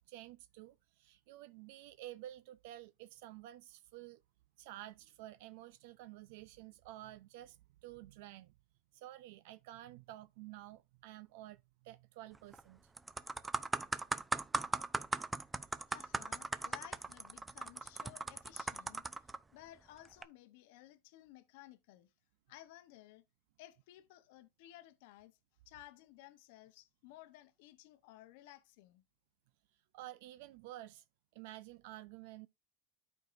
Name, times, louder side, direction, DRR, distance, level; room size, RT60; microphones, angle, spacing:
voice 1, 0.1-4.2 4.6-8.5 8.9-12.8 29.9-31.0 31.3-32.5, right 15 dB, 75° right, 0.4 m, -51 dB
sound 1, 12.3-12.6 13.0-19.4 20.1-20.2, right 3 dB, 15° right, 0.5 m, -38 dB
voice 2, 15.7-22.1 22.5-23.2 23.6-25.4 25.7-29.0, left 15 dB, 75° left, 0.8 m, -57 dB
13.0 x 4.5 x 2.5 m
supercardioid pair, 110°, 0 cm